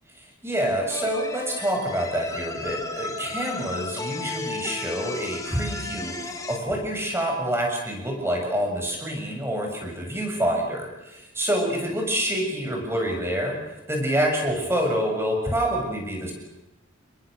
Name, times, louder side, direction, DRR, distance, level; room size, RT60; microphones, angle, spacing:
voice 1, 0.2-13.6 13.9-16.3, equal, 10° right, 1 dB, 6.9 m, -27 dB
sound 1, 0.9-6.6, left 2 dB, 15° left, 2.2 m, -34 dB
29.5 x 22.0 x 6.6 m, 0.96 s
head